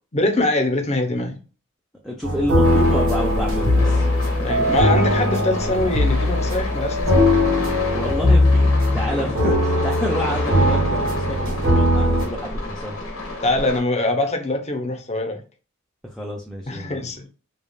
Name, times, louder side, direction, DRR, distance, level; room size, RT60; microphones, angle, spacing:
voice 1, 0.1-1.4 4.4-7.2 13.4-15.4 16.7-17.3, left 2 dB, 30° left, 0.8 m, -23 dB
voice 2, 2.0-4.1 7.9-13.0 16.0-17.1, equal, ahead, 0.5 m, -29 dB
sound 1, 2.2-12.2, left 1 dB, 75° right, 1.7 m, -19 dB
sound 2, 2.6-13.8, left 2 dB, 85° left, 1.3 m, -30 dB
5.1 x 2.4 x 2.3 m
head